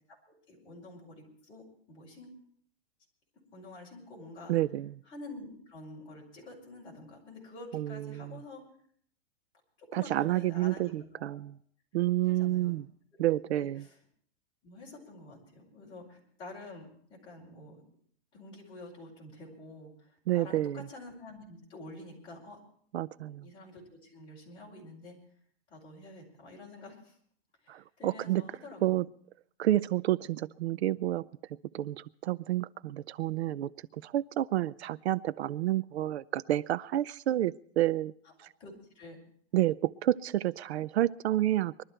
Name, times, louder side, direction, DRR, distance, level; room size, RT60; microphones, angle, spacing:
voice 1, 0.5-2.3 3.5-4.6 5.1-8.6 9.8-11.4 12.2-12.8 13.1-13.9 14.6-17.8 18.3-22.6 23.4-25.2 25.7-27.2 27.6-29.0 38.2-39.2, left 2 dB, 15° left, -5 dB, 4.8 m, -48 dB
voice 2, 4.5-4.9 7.7-8.4 9.9-11.5 11.9-12.8 13.2-13.8 20.3-20.8 22.9-23.5 27.7-28.4 28.8-29.0 29.6-31.2 31.7-33.7 34.0-38.1 39.5-41.7, right 14 dB, 75° right, 18 dB, 0.5 m, -29 dB
21.5 x 12.5 x 4.4 m, 0.62 s
supercardioid pair, 175°, 33 cm